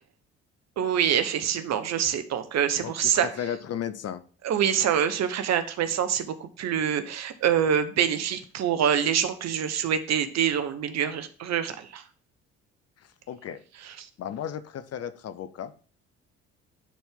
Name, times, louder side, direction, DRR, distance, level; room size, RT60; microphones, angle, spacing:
voice 1, 0.8-3.3 4.4-12.0 14.0-14.1, right 9 dB, 55° right, 11 dB, 1.2 m, -25 dB
voice 2, 2.8-4.2 13.0-13.6 14.2-15.7, left 9 dB, 50° left, 13 dB, 0.9 m, -35 dB
10.0 x 4.5 x 3.7 m, 0.40 s
hypercardioid pair, 60°, 31 cm